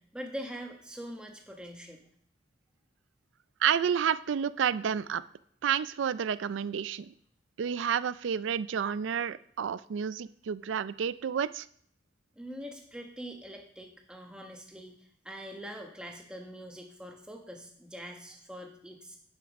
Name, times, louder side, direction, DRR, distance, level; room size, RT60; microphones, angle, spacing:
voice 1, 0.1-2.0 12.4-19.2, equal, 5° right, 1 dB, 1.2 m, -43 dB
voice 2, 3.6-5.2 5.6-7.1 7.6-11.7, right 8 dB, 75° right, 16 dB, 0.4 m, -30 dB
8.9 x 5.9 x 5.2 m, 0.62 s
head